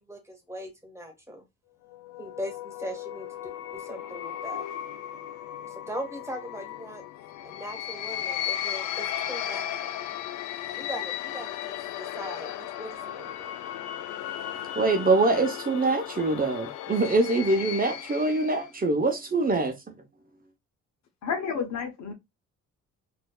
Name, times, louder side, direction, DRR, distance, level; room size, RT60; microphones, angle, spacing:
voice 1, 0.0-1.4 2.2-4.6 5.8-7.0 7.4-9.7 10.7-13.5, equal, 10° right, 1.4 m, -40 dB
sound 1, 1.9-18.7, left 11 dB, 85° left, 0.5 m, -36 dB
voice 2, 14.7-19.7, right 3 dB, 30° right, 0.8 m, -24 dB
voice 3, 21.2-22.1, left 6 dB, 70° left, 1.0 m, -30 dB
4.2 x 2.7 x 2.3 m
cardioid pair, 90°, 30 cm